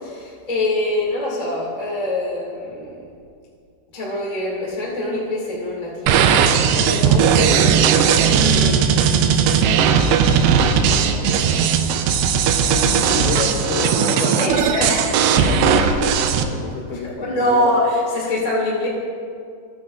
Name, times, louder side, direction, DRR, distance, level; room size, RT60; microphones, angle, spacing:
voice 1, 0.0-3.0 3.9-6.3 6.7-9.6 10.2-11.6 14.2-15.1 16.9-18.9, left 1 dB, 25° left, -5 dB, 0.8 m, -25 dB
sound 1, 6.1-16.4, right 7 dB, 85° right, 2.5 m, -17 dB
voice 2, 12.6-14.6 15.4-17.4, left 4 dB, 85° left, 1 dB, 2.1 m, -28 dB
15.5 x 9.4 x 2.5 m, 2.3 s
omnidirectional pair, 5.2 m